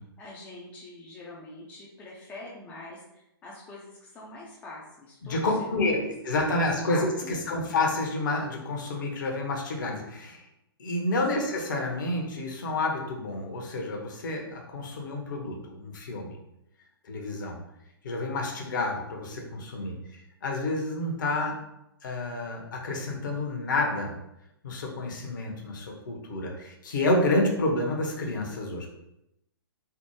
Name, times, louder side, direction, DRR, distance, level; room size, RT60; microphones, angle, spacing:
voice 1, 0.0-7.6 11.3-11.5, left 2 dB, 10° left, -4 dB, 0.4 m, -44 dB
voice 2, 5.2-10.4 10.8-16.4 17.1-17.6 18.0-21.6 22.0-24.1 24.6-28.9, left 2 dB, 50° left, 1 dB, 0.8 m, -29 dB
3.4 x 2.1 x 3.0 m, 0.83 s
figure-of-eight pair, 120°, 13 cm